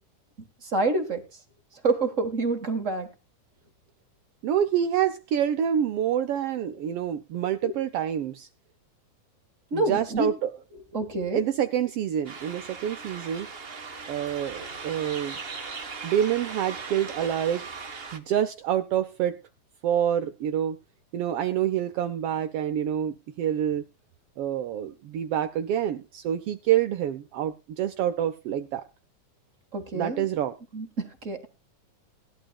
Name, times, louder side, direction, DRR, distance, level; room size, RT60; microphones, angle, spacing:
voice 1, 0.6-1.2 1.8-3.1 9.7-10.3 10.9-11.4 29.7-30.2 30.7-31.5, right 3 dB, 35° right, 6 dB, 1.3 m, -27 dB
voice 2, 4.4-8.5 9.7-10.5 11.3-13.5 14.1-15.4 16.0-17.6 18.1-19.4 19.8-20.8 21.1-23.8 24.4-28.9 29.9-30.6, right 10 dB, 85° right, 9 dB, 1.3 m, -27 dB
sound 1, 12.2-18.2, right 4 dB, 55° right, 0.6 m, -39 dB
19.0 x 11.5 x 2.3 m, 0.29 s
omnidirectional pair, 3.5 m